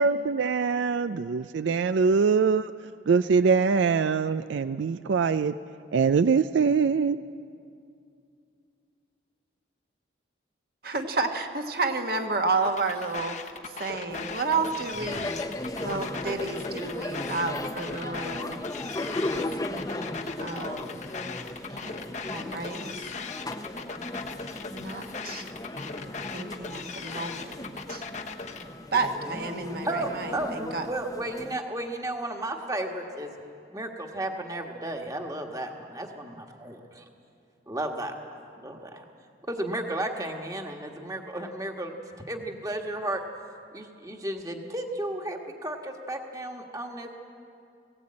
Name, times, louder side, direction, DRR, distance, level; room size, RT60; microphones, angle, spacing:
voice 1, 0.0-2.7 3.1-5.5 5.9-7.2, right 5 dB, 75° right, 12 dB, 0.4 m, -23 dB
voice 2, 10.8-15.3 15.8-18.6 19.3-19.5 20.4-21.0 21.7-21.9 22.3-23.0 24.7-25.5 26.3-27.6 27.9-28.1 28.9-30.9, right 3 dB, 50° right, 4 dB, 1.3 m, -31 dB
sound 1, 12.6-28.6, left 5 dB, 40° left, 1.0 m, -39 dB
sound 2, 14.1-31.6, left 1 dB, 20° left, 0.7 m, -36 dB
voice 3, 29.8-33.3 33.7-37.0 37.7-39.0 39.5-41.9 42.3-43.2 43.7-47.1, right 1 dB, 20° right, 3 dB, 1.4 m, -33 dB
18.0 x 17.5 x 8.6 m, 2.4 s
head